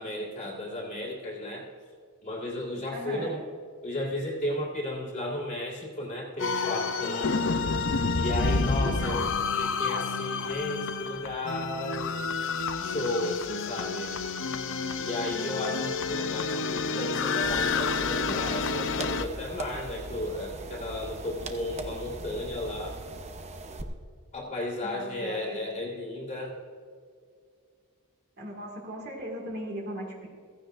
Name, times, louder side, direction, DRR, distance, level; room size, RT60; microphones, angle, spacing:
voice 1, 0.0-1.7 2.2-3.4 3.8-7.4 8.1-9.2 9.6-12.3 12.8-14.1 15.0-23.0 24.3-26.6, left 1 dB, 35° left, -9 dB, 2.0 m, -34 dB
voice 2, 2.9-3.3 8.8-9.3 24.8-25.6 28.4-30.3, right 1 dB, 50° right, -1 dB, 2.1 m, -38 dB
sound 1, 6.4-19.2, left 4 dB, 60° left, 0.6 m, -29 dB
sound 2, 17.4-23.8, right 2 dB, 30° right, 0.8 m, -40 dB
15.5 x 15.0 x 2.6 m, 2.1 s
head